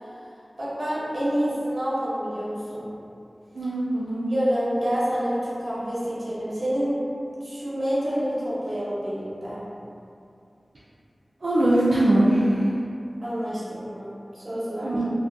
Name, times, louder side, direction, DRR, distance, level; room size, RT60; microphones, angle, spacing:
voice 1, 0.6-2.9 4.3-7.0 7.4-9.6 13.2-14.1 14.3-15.0, equal, 45° right, -9 dB, 0.8 m, -28 dB
voice 2, 3.5-4.3 11.4-12.5 14.8-15.0, right 1 dB, 80° right, -9 dB, 0.3 m, -21 dB
2.3 x 2.2 x 2.5 m, 2.5 s
wide cardioid pair, 60°, 0 cm